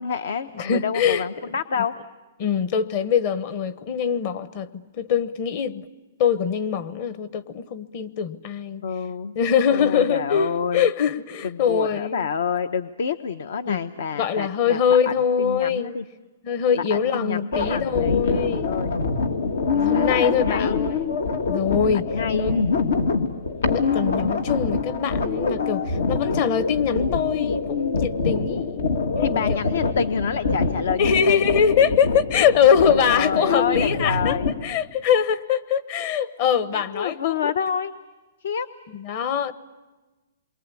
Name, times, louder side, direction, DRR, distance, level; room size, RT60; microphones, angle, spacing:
voice 1, 0.0-1.9 8.8-9.4 9.7-10.9 11.4-14.8 15.1-16.0 16.9-19.0 19.9-20.8 22.1-22.5 29.2-31.5 33.1-34.5 36.7-37.9 38.4-38.7, left 6 dB, 75° left, 0.8 m, -28 dB
voice 2, 0.5-1.8 2.4-5.9 6.2-8.8 9.3-12.3 13.7-13.8 14.1-16.0 16.4-18.7 19.7-20.9 21.5-22.1 22.4-22.5 23.7-29.6 31.0-34.4 34.6-37.5 38.9-39.5, left 7 dB, 40° left, 1.1 m, -23 dB
sound 1, 17.5-34.5, left 4 dB, 90° left, 2.1 m, -25 dB
28.5 x 23.5 x 8.4 m
hypercardioid pair, 160°, 0 cm